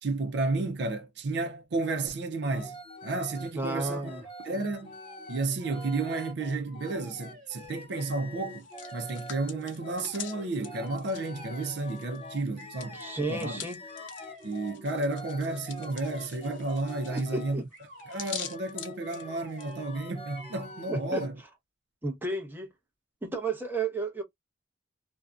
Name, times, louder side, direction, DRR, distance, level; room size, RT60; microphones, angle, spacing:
voice 1, 0.0-2.8 3.0-4.1 4.4-4.9 5.3-8.7 8.9-13.0 13.3-13.6 14.4-17.6 18.1-21.4, right 2 dB, 65° right, 0.5 m, -32 dB
sound 1, 2.4-17.6 18.0-21.3, left 1 dB, 30° left, 0.7 m, -46 dB
voice 2, 3.5-4.3 12.9-13.8 17.1-17.6 20.9-21.2 22.0-22.7 23.2-24.2, right 3 dB, 10° right, 0.7 m, -33 dB
sound 2, 3.5-4.4 4.8-6.3 6.6-7.9 8.6-9.1 9.9-10.6 11.3-12.0 12.6-13.3 13.8-14.8 15.6-16.8 17.7-18.2 19.1-19.9 20.3-20.9, equal, 45° right, 1.1 m, -51 dB
Hands, 8.5-12.2 12.5-19.7, left 8 dB, 90° left, 0.7 m, -44 dB
2.6 x 2.2 x 2.3 m
head